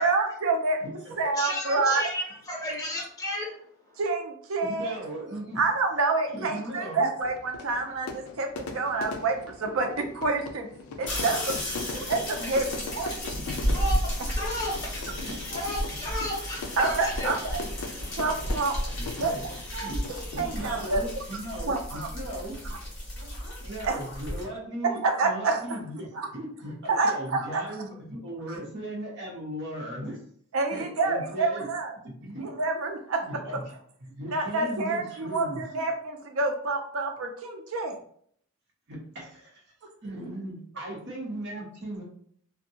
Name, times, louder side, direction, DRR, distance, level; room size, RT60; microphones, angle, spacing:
voice 1, 0.0-0.8 1.2-2.0 4.0-5.0 5.6-10.7 11.0-11.4 12.1-13.1 16.8-17.6 18.2-18.8 19.2-19.3 19.7-21.0 21.7-22.4 22.7-22.8 23.8-24.0 24.8-25.8 26.1-26.3 26.9-27.6 28.5-28.6 30.5-31.9 32.4-33.2 33.5-33.6 34.3-38.0, right 3 dB, 70° right, 4 dB, 0.5 m, -28 dB
voice 2, 0.8-1.1 1.9-2.0 4.7-5.6 6.3-7.1 11.9-12.0 15.2-15.4 15.9-16.0 17.9-18.0 19.0-19.4 19.8-20.0 20.3-22.6 23.6-26.1 26.3-30.2 30.7-31.7 32.0-32.5 33.2-33.6 34.0-35.6 38.9-39.6 40.0-42.0, right 1 dB, 55° right, -2 dB, 0.8 m, -37 dB
voice 3, 1.4-3.5 3.9-4.0 13.7-14.7 15.5-17.3, left 1 dB, 15° left, -4 dB, 0.7 m, -33 dB
Fire / Fireworks, 7.2-21.2, left 3 dB, 80° left, 0.4 m, -40 dB
sound 1, 11.0-24.4, equal, 55° left, 1.1 m, -33 dB
2.6 x 2.2 x 2.7 m, 0.62 s
head